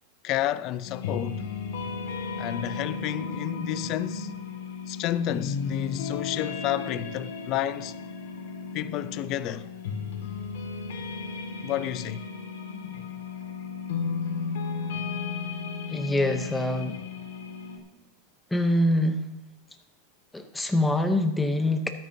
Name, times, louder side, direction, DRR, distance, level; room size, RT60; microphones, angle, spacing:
voice 1, 0.2-1.4 2.4-4.3 4.9-7.9 8.7-9.7 11.6-12.3, left 12 dB, 35° left, 0.4 m, -30 dB
sound 1, 0.9-17.8, left 5 dB, 80° left, 1.9 m, -34 dB
voice 2, 15.9-17.0 18.5-19.2 20.3-21.9, left 1 dB, 5° left, 0.8 m, -24 dB
13.5 x 12.0 x 2.7 m
supercardioid pair, 160°, 0 cm